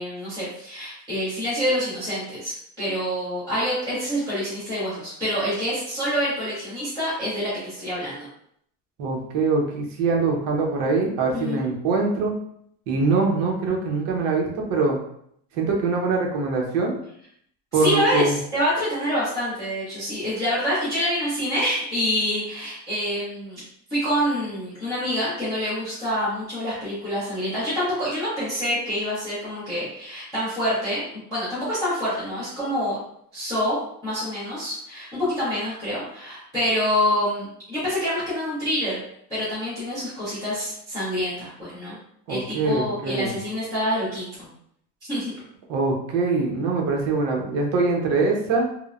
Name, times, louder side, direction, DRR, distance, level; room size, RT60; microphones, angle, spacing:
voice 1, 0.0-8.3 11.3-11.7 17.7-23.6 23.9-33.0 33.3-33.8 34.0-39.0 39.3-42.0 42.3-44.5 45.1-45.3, equal, 10° left, -15 dB, 0.3 m, -26 dB
voice 2, 9.0-12.3 12.9-15.0 15.5-17.0 17.7-18.4 42.3-43.3 45.7-48.7, right 3 dB, 50° right, 0 dB, 0.7 m, -23 dB
3.0 x 2.0 x 2.3 m, 0.70 s
cardioid pair, 175°, 48 cm